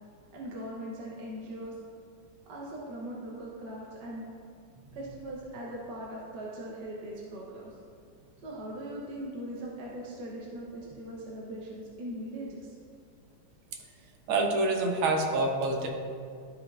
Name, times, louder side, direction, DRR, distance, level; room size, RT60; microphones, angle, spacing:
voice 1, 0.3-1.8 2.5-4.3 4.9-7.8 8.4-12.8, right 1 dB, 60° right, -4 dB, 1.4 m, -40 dB
voice 2, 14.3-15.9, right 2 dB, 80° right, 2 dB, 1.7 m, -26 dB
13.5 x 5.1 x 2.4 m, 2.3 s
omnidirectional pair, 2.3 m